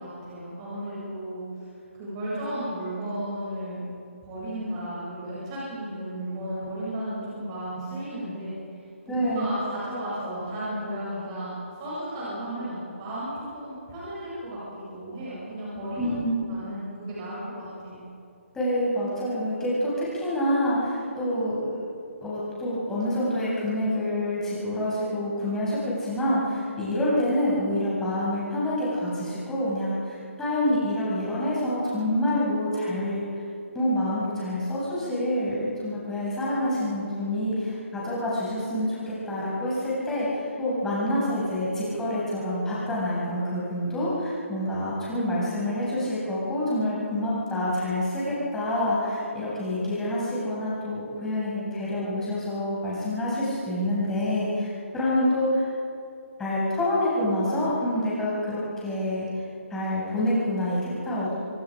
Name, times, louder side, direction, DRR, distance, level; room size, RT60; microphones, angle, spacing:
voice 1, 0.0-1.7 2.0-3.9 4.2-14.6 14.9-16.1 16.5-18.0, right 1 dB, 25° right, -9 dB, 7.8 m, -34 dB
voice 2, 9.1-9.4 16.0-16.4 18.5-21.8 22.2-33.2 33.7-54.7 54.9-55.7 56.4-59.4 59.7-61.3, left 1 dB, 5° left, -8 dB, 7.7 m, -27 dB
27.0 x 22.5 x 5.3 m, 2.5 s
hypercardioid pair, 160°, 7 cm